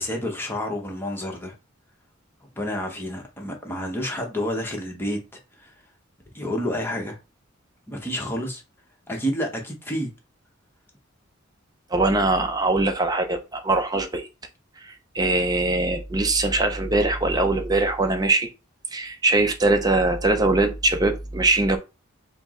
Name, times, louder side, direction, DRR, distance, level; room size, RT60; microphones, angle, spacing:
voice 1, 0.0-1.5 2.6-5.7 6.3-7.2 7.9-8.6 9.1-10.1, equal, 10° left, 0.9 m, -29 dB
voice 2, 11.9-14.3 14.8-18.5 18.9-21.8, right 2 dB, 20° right, 0.5 m, -22 dB
4.4 x 2.0 x 3.6 m
head